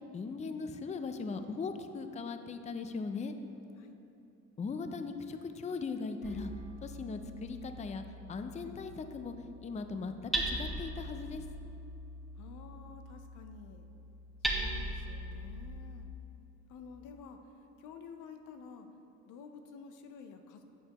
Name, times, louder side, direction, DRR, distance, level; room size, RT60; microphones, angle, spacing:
voice 1, 0.1-3.4 4.6-6.5 6.8-9.3 9.6-10.1 10.5-11.4, left 4 dB, 25° left, 8 dB, 0.4 m, -39 dB
Hammer, 6.2-16.0, right 1 dB, ahead, 1.1 m, -40 dB
voice 2, 12.4-13.9 14.5-16.1 16.7-17.4 17.8-18.9 19.3-20.6, left 5 dB, 85° left, 6 dB, 0.6 m, -50 dB
11.0 x 6.7 x 2.9 m, 2.9 s
cardioid pair, 90°, 30 cm